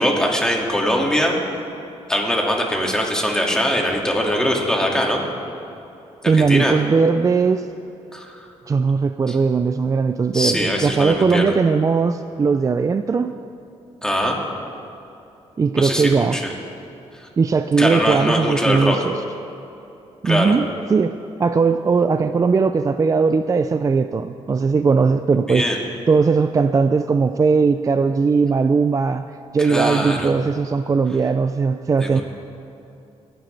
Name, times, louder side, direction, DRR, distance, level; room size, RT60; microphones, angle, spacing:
voice 1, 0.0-1.4 2.1-5.2 6.2-6.7 8.1-8.5 9.3-9.4 10.3-11.4 14.0-14.4 15.8-16.5 17.1-17.3 17.8-19.0 20.2-20.5 25.5-25.8 29.6-30.3 32.0-32.2, equal, 5° left, -1 dB, 2.1 m, -21 dB
voice 2, 6.3-7.7 8.7-13.4 15.6-16.4 17.4-19.2 20.2-21.1 21.4-25.7 26.1-29.3 29.5-32.2, right 5 dB, 30° right, 10 dB, 0.4 m, -19 dB
22.0 x 10.5 x 3.3 m, 2.8 s
cardioid pair, 95°, 12 cm